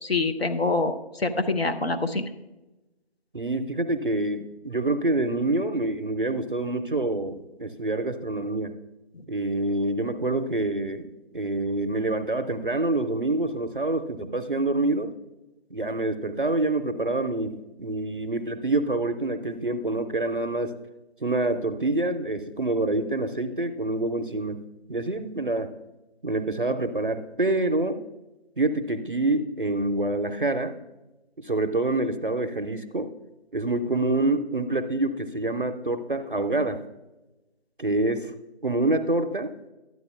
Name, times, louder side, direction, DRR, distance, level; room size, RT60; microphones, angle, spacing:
voice 1, 0.0-2.3, left 3 dB, 70° left, 6 dB, 0.8 m, -25 dB
voice 2, 3.3-8.7 9.3-15.1 15.7-20.7 21.2-24.6 24.9-25.7 26.2-28.0 28.6-30.7 31.4-33.1 33.5-36.8 37.8-38.3 38.6-39.5, right 2 dB, 55° right, 8 dB, 0.5 m, -26 dB
12.5 x 9.3 x 2.3 m, 1.0 s
figure-of-eight pair, 170°, 32 cm